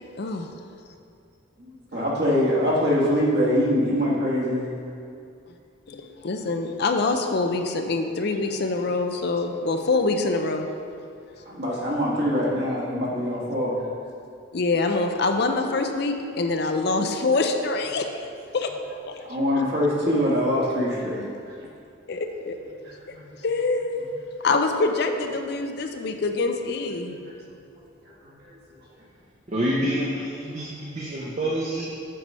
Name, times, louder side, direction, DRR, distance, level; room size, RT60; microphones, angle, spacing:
voice 1, 0.2-0.5 1.9-2.0 5.9-10.7 14.5-18.2 18.5-18.7 19.1-19.2 22.1-22.5 23.1-23.2 23.4-24.0 24.4-27.2, left 3 dB, 50° left, 5 dB, 0.5 m, -25 dB
voice 2, 1.6-4.7 11.4-13.8 19.3-21.3 23.0-23.2 27.3-27.4, equal, 50° right, -5 dB, 1.6 m, -23 dB
voice 3, 29.5-31.8, right 1 dB, 35° right, -4 dB, 0.8 m, -27 dB
7.8 x 4.8 x 5.4 m, 2.4 s
head